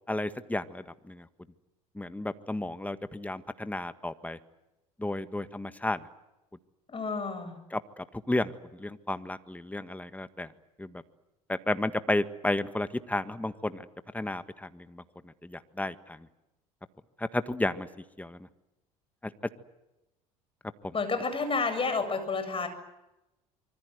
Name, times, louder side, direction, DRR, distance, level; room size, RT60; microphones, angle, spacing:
voice 1, 0.1-1.3 1.9-4.4 5.0-6.0 7.7-8.5 8.8-10.5 10.8-10.9 11.5-13.9 14.1-15.0 15.4-16.2 17.2-17.9 18.2-18.4 19.2-19.3, left 1 dB, 10° left, 11 dB, 1.7 m, -32 dB
voice 2, 6.9-7.6 20.9-22.7, left 4 dB, 30° left, 8 dB, 7.5 m, -30 dB
26.0 x 24.5 x 8.2 m, 0.96 s
hypercardioid pair, 65°, 19 cm